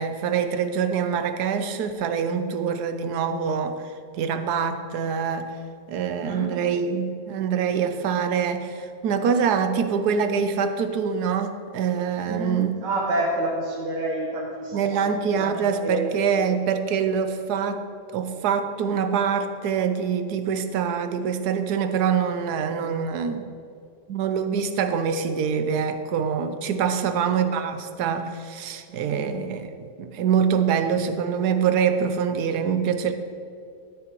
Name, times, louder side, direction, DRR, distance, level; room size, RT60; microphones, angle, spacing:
voice 1, 0.0-3.8 4.2-5.5 5.9-12.7 14.7-23.5 24.1-33.1, right 7 dB, 70° right, 9 dB, 1.2 m, -25 dB
voice 2, 6.2-6.6 12.3-16.1 27.0-27.1 28.9-29.3, right 1 dB, 85° right, -4 dB, 1.8 m, -29 dB
12.5 x 9.9 x 3.0 m, 2.4 s
omnidirectional pair, 1.9 m